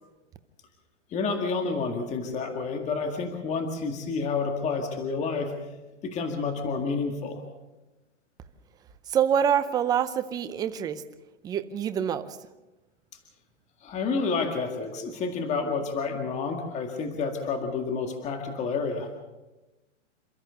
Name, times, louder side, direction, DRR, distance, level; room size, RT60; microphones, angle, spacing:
voice 1, 1.1-5.5 6.0-7.4 13.8-19.1, left 4 dB, 20° left, 5 dB, 1.9 m, -29 dB
voice 2, 9.1-11.0 11.4-12.4, right 8 dB, 10° right, 11 dB, 0.6 m, -26 dB
28.0 x 13.5 x 6.9 m, 1.1 s
hypercardioid pair, 150°, 37 cm